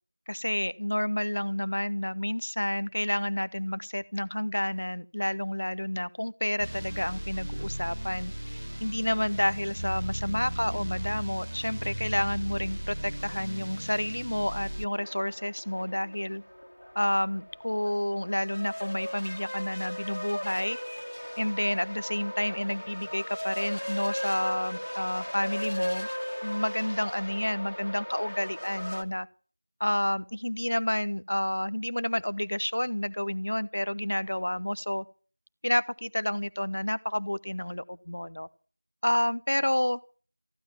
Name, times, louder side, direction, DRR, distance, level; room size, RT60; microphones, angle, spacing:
voice 1, 0.3-8.3 8.8-16.4 16.9-20.8 21.4-26.1 26.4-29.3 29.8-35.0 35.6-38.5 39.0-40.0, left 1 dB, 45° left, 17 dB, 0.9 m, -30 dB
sound 1, 6.6-14.8, right 1 dB, 45° right, 0.8 m, -36 dB
sound 2, 14.9-29.0, equal, 65° left, 2.3 m, -38 dB
15.0 x 11.5 x 7.1 m, 0.39 s
figure-of-eight pair, 175°, 0 cm